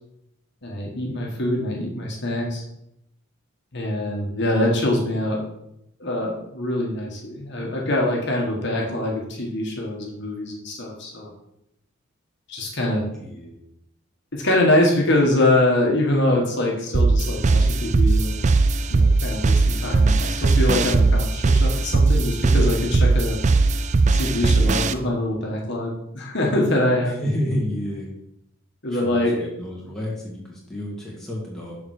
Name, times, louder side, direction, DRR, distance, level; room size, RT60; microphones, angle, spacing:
voice 1, 0.6-2.6 3.7-5.4 6.0-11.3 12.5-13.0 14.3-18.4 18.9-23.4 24.1-27.2 28.8-29.5, left 1 dB, 50° left, -1 dB, 1.7 m, -24 dB
voice 2, 13.2-13.6 27.1-28.1 28.9-31.8, equal, 5° left, -5 dB, 2.3 m, -30 dB
sound 1, 16.9-24.9, right 3 dB, 35° right, 0.4 m, -19 dB
7.0 x 5.0 x 6.5 m, 0.81 s
head